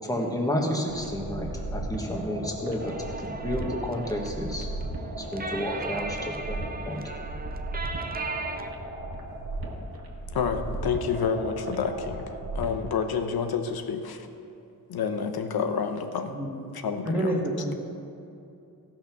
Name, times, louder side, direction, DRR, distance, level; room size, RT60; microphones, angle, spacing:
voice 1, 0.0-4.7 5.2-7.0, equal, 10° left, 0 dB, 1.4 m, -31 dB
sound 1, 0.9-12.9, right 1 dB, 75° right, 1.7 m, -36 dB
sound 2, 2.8-8.7, right 3 dB, 25° right, 0.5 m, -37 dB
voice 2, 10.3-14.3 14.9-16.4 16.7-17.4, left 6 dB, 85° left, 7 dB, 0.9 m, -29 dB
voice 3, 16.3-16.6 17.0-17.7, right 1 dB, 5° right, -3 dB, 1.8 m, -28 dB
16.0 x 6.0 x 5.9 m, 2.8 s
wide cardioid pair, 145°, 36 cm